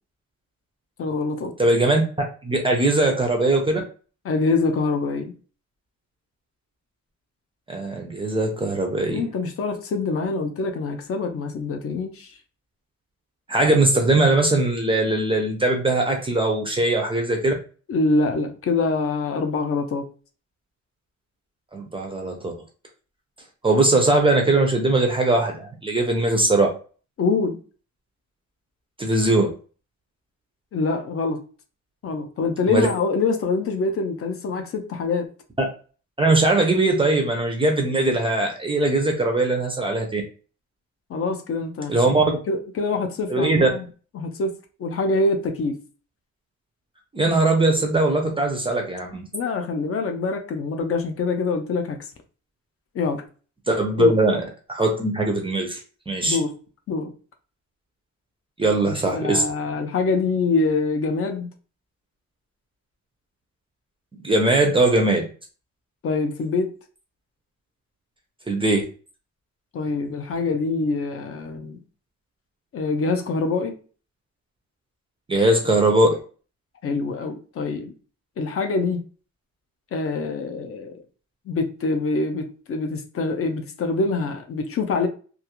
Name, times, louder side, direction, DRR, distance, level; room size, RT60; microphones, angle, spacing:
voice 1, 1.0-1.5 4.2-5.3 9.1-12.4 17.9-20.1 27.2-27.6 30.7-31.4 32.0-35.3 41.1-42.2 42.5-43.9 44.1-44.5 44.8-45.7 49.3-52.1 52.9-53.2 54.0-54.1 56.2-56.5 56.9-57.1 58.9-61.5 66.0-66.7 69.7-71.8 72.7-73.7 76.8-77.9 78.4-79.0 79.9-81.0 81.5-85.1, left 3 dB, 50° left, 0.5 m, -25 dB
voice 2, 1.6-3.8 7.7-9.2 13.5-17.5 21.7-22.5 23.6-26.7 29.0-29.5 32.7-32.9 35.6-35.7 36.2-40.2 41.9-42.4 43.3-43.7 47.1-49.2 53.7-54.4 54.7-55.8 56.1-56.4 58.6-59.5 64.2-65.3 68.5-68.8 75.3-76.2, right 2 dB, 20° right, 0.4 m, -20 dB
2.3 x 2.3 x 2.9 m
wide cardioid pair, 180°, 30 cm